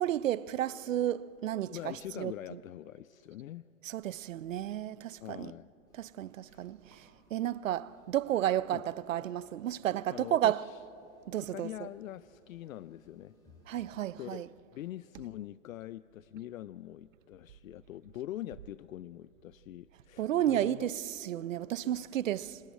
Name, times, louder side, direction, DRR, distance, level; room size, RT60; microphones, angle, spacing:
voice 1, 0.0-2.6 3.8-5.5 6.0-10.6 11.3-11.9 13.7-14.5 20.2-22.6, right 12 dB, 70° right, 0.7 m, -32 dB
voice 2, 1.7-3.6 5.2-5.7 6.5-6.7 8.7-8.8 10.1-10.8 11.5-13.3 14.2-14.5 14.7-20.9 21.8-21.9, left 13 dB, 75° left, 0.5 m, -43 dB
sound 1, 5.9-13.8, right 1 dB, 10° left, 4.3 m, -65 dB
25.5 x 11.5 x 9.5 m
hypercardioid pair, 150°, 41 cm